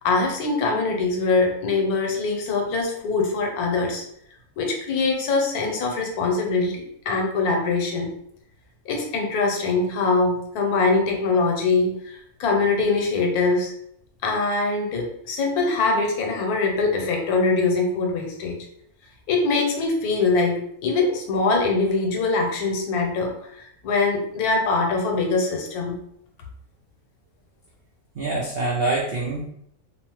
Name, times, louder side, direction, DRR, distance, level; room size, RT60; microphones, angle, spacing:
voice 1, 0.0-4.0 4.6-8.1 8.9-13.7 14.2-18.6 19.3-26.0, left 3 dB, 80° left, 2 dB, 1.1 m, -23 dB
voice 2, 28.1-29.5, right 2 dB, 80° right, -3 dB, 0.5 m, -25 dB
2.9 x 2.0 x 2.9 m, 0.71 s
omnidirectional pair, 1.6 m